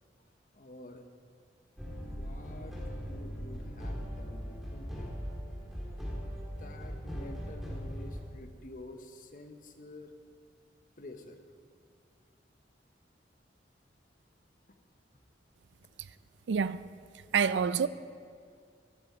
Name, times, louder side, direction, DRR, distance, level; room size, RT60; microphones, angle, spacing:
voice 1, 0.5-1.1 2.0-5.1 6.3-10.1 11.0-11.4, left 2 dB, 45° left, 1.0 m, -49 dB
sound 1, 1.8-8.2, equal, ahead, 2.2 m, -39 dB
voice 2, 16.5-17.0 17.3-17.9, right 6 dB, 80° right, 0.4 m, -27 dB
14.5 x 12.0 x 4.4 m
head